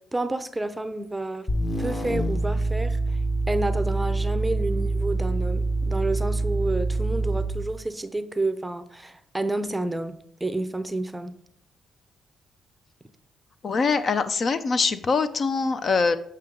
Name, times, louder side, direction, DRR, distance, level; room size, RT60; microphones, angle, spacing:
voice 1, 0.1-1.5 1.8-3.0 3.5-11.3, right 2 dB, 10° right, 11 dB, 0.5 m, -29 dB
sound 1, 1.5-7.6, right 2 dB, 30° left, 1.1 m, -26 dB
voice 2, 13.6-16.2, left 4 dB, 45° left, 11 dB, 0.5 m, -23 dB
7.5 x 5.5 x 3.8 m, 0.68 s
cardioid pair, 90°, 0 cm